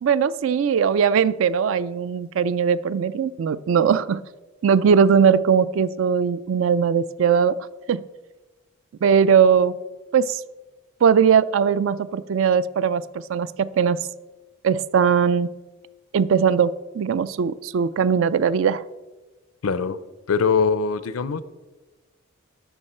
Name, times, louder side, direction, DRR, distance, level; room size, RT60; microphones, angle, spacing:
voice 1, 0.0-4.2 4.6-7.6 7.9-8.0 9.0-9.8 10.1-10.4 11.0-14.0 14.6-15.5 16.1-18.8, right 7 dB, 65° right, 17 dB, 0.3 m, -20 dB
voice 2, 19.6-20.0 20.3-21.4, left 5 dB, 80° left, 15 dB, 0.5 m, -22 dB
13.0 x 5.3 x 4.3 m, 1.2 s
head